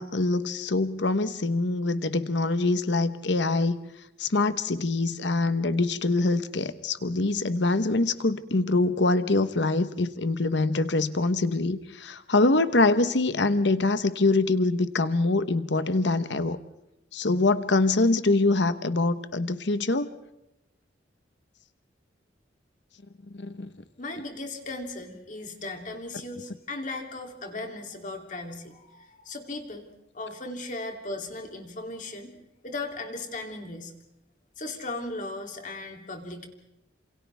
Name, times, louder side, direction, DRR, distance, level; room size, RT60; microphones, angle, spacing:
voice 1, 0.0-3.8 4.2-16.6 17.1-20.1 23.3-23.7, left 2 dB, 75° left, 11 dB, 1.1 m, -24 dB
voice 2, 24.0-29.9 30.1-32.3 32.6-33.9 34.6-36.5, left 2 dB, 45° left, 3 dB, 3.0 m, -37 dB
28.5 x 28.0 x 3.5 m, 0.89 s
head